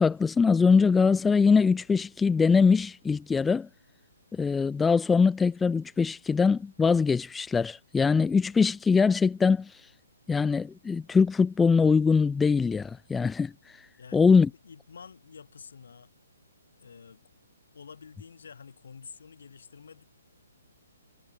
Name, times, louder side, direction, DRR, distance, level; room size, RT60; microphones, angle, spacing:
voice 1, 0.0-3.7 4.3-9.7 10.3-13.5 14.1-14.5, left 5 dB, 10° left, 0.4 m, -22 dB
voice 2, 14.0-16.1 16.8-17.2 17.7-20.0, left 6 dB, 65° left, 3.5 m, -49 dB
figure-of-eight pair, 135°, 0 cm